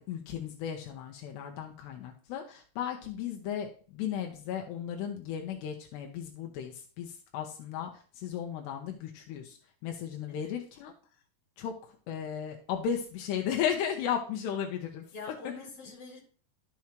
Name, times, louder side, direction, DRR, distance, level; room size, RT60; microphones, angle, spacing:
voice 1, 0.1-7.9 8.2-9.6 9.8-10.9 11.6-11.7 12.1-15.0, left 8 dB, 85° left, 2 dB, 3.1 m, -35 dB
voice 2, 15.1-16.2, left 4 dB, 35° left, -2 dB, 4.9 m, -45 dB
11.5 x 7.1 x 3.1 m, 0.41 s
omnidirectional pair, 4.8 m